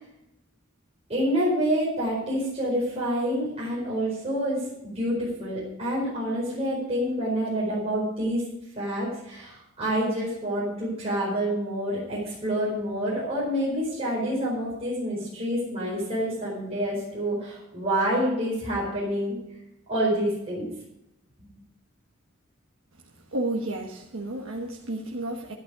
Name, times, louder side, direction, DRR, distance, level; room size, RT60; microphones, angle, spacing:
voice 1, 1.1-8.4 8.7-19.4 19.9-20.7 21.4-21.5, equal, 30° right, -6 dB, 4.7 m, -27 dB
voice 2, 23.3-25.5, right 1 dB, 80° right, -1 dB, 1.4 m, -31 dB
12.0 x 11.5 x 4.8 m, 0.85 s
head